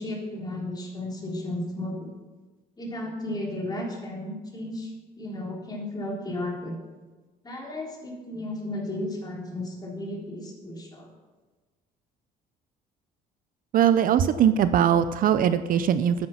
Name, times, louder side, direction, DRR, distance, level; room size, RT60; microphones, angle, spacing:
voice 1, 0.0-2.1 2.8-6.8 7.4-11.1, left 1 dB, 25° left, -2 dB, 3.4 m, -34 dB
voice 2, 13.7-16.3, right 9 dB, 55° right, 13 dB, 0.5 m, -21 dB
10.0 x 9.5 x 5.8 m, 1.2 s
cardioid pair, 110°, 17 cm